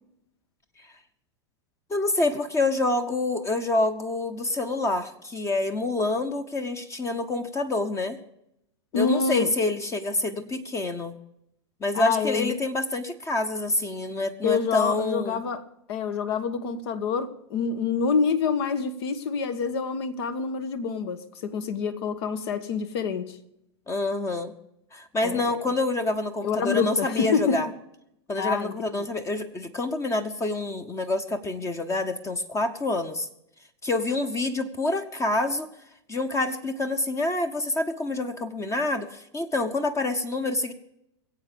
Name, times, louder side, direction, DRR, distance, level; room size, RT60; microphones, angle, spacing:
voice 1, 1.9-8.2 8.9-11.2 11.8-15.5 23.9-24.5 24.9-27.7 28.3-33.3 33.8-35.7 36.1-40.7, left 2 dB, 20° left, 1.0 m, -27 dB
voice 2, 8.9-9.5 11.9-12.5 14.4-15.6 15.9-23.4 25.2-25.7 26.4-27.6 28.4-29.0, left 5 dB, 65° left, 1.4 m, -27 dB
22.0 x 8.1 x 5.2 m
hypercardioid pair, 105°, 14 cm